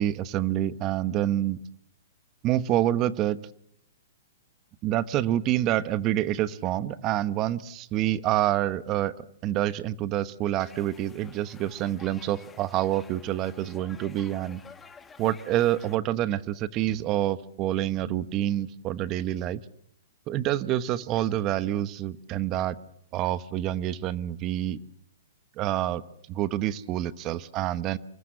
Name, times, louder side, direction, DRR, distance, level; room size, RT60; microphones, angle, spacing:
voice 1, 0.0-1.6 2.4-3.5 4.8-9.1 9.4-14.6 15.2-19.6 20.3-22.8 23.1-24.8 25.6-26.0 26.3-28.0, right 13 dB, 30° right, 16 dB, 1.1 m, -27 dB
sound 1, 10.6-16.0, left 5 dB, 10° left, 1.6 m, -51 dB
26.0 x 21.5 x 7.7 m, 0.71 s
hypercardioid pair, 150°, 0 cm